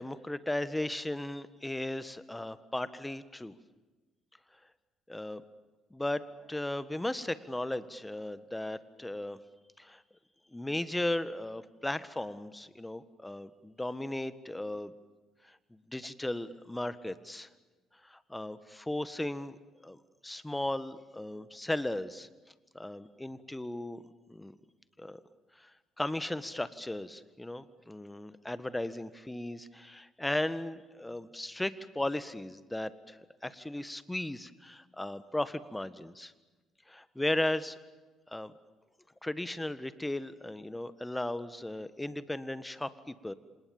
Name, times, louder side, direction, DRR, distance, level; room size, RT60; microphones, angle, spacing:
voice 1, 0.0-3.5 5.1-5.4 5.9-9.4 9.8-10.0 10.5-14.9 15.9-17.5 18.0-19.5 19.8-20.0 20.2-22.3 22.7-24.0 24.3-24.6 25.0-25.2 25.6-25.7 26.0-33.2 33.4-36.3 36.9-37.8 38.3-38.5 39.2-43.3, left 1 dB, 10° left, 14 dB, 1.6 m, -36 dB
27.5 x 27.0 x 7.3 m, 1.2 s
figure-of-eight pair, 50°, 0 cm